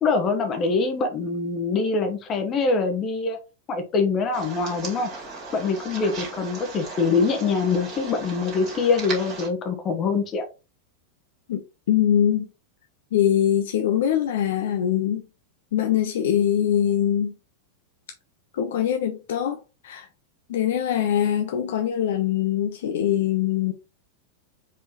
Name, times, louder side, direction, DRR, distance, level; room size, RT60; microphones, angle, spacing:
voice 1, 0.0-3.4 3.7-5.1 5.5-10.4, left 4 dB, 30° left, 1.1 m, -24 dB
sound 1, 4.3-9.5, right 3 dB, 40° right, 2.3 m, -37 dB
voice 2, 11.9-12.5 13.1-15.2 15.7-17.3 18.5-19.6 19.8-20.1 20.5-23.7, left 10 dB, 55° left, 0.5 m, -22 dB
4.7 x 3.7 x 3.1 m
figure-of-eight pair, 90°, 0 cm